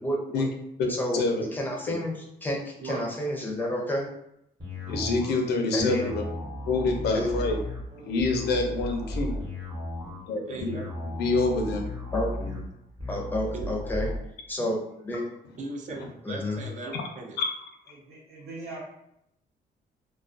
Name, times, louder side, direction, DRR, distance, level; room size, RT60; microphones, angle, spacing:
voice 1, 0.0-0.4 0.9-1.2 1.5-2.1 2.4-4.1 5.7-6.1 7.1-7.3 12.1-12.3 13.1-14.1 14.5-15.2 16.2-16.6, left 1 dB, 10° left, -1 dB, 0.5 m, -30 dB
voice 2, 0.8-1.4 1.9-2.0 4.8-6.3 6.7-7.6 8.0-9.4 10.3-10.8 11.2-11.9 12.1-12.5 17.4-17.5, left 3 dB, 90° left, 3 dB, 0.5 m, -27 dB
sound 1, 4.6-14.2, left 1 dB, 25° right, 0.9 m, -35 dB
voice 3, 7.9-8.2 9.0-9.5 17.9-18.8, right 2 dB, 70° right, -3 dB, 0.9 m, -44 dB
voice 4, 10.5-10.9 13.5-13.7 15.6-17.4, right 3 dB, 50° right, 2 dB, 0.4 m, -37 dB
2.3 x 2.2 x 2.4 m, 0.78 s
cardioid pair, 120°, 17 cm